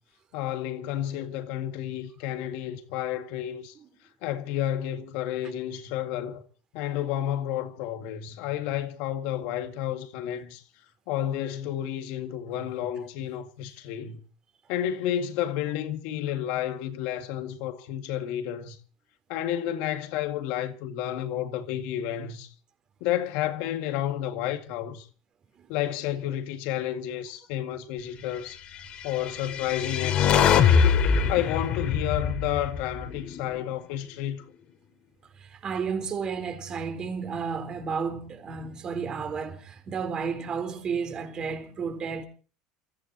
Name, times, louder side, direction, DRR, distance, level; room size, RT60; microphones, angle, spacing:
voice 1, 0.3-3.7 4.2-6.4 6.7-10.6 11.1-14.2 14.7-18.8 19.3-22.5 23.0-25.1 25.7-28.6 29.0-30.8 31.3-34.4, left 11 dB, 70° left, 2.1 m, -31 dB
sound 1, 29.2-33.5, left 7 dB, 45° left, 2.5 m, -23 dB
voice 2, 35.4-42.2, right 5 dB, 35° right, 3.9 m, -32 dB
29.0 x 15.0 x 2.9 m
supercardioid pair, 120°, 2 cm